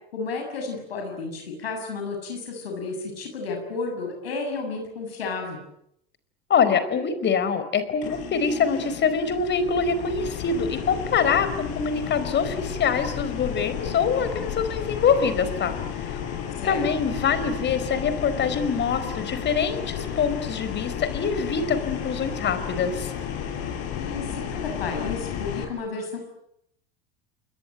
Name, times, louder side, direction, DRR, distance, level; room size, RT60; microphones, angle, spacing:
voice 1, 0.1-5.6 16.6-16.9 23.9-26.2, left 4 dB, 85° left, 3 dB, 7.2 m, -32 dB
voice 2, 6.5-15.8 16.6-23.1, left 6 dB, 40° left, 12 dB, 4.6 m, -24 dB
sound 1, 8.0-25.6, left 8 dB, 55° left, 6.6 m, -33 dB
29.5 x 21.5 x 9.2 m, 0.75 s
hypercardioid pair, 85°, 29 cm